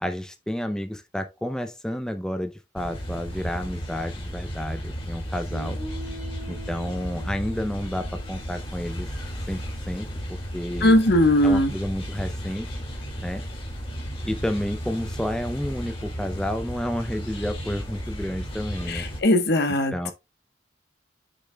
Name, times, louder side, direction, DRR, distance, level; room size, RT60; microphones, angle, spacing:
voice 1, 0.0-5.8 6.5-9.1 9.5-10.9 11.4-12.8 13.2-13.4 14.2-19.0 19.9-20.1, equal, 5° left, 0.5 m, -30 dB
sound 1, 2.8-19.2, equal, 30° left, 2.0 m, -34 dB
Guitar, 5.5-9.5, equal, 80° left, 3.0 m, -44 dB
voice 2, 10.8-11.7 18.9-20.1, left 1 dB, 60° left, 1.1 m, -19 dB
8.1 x 6.6 x 2.2 m
head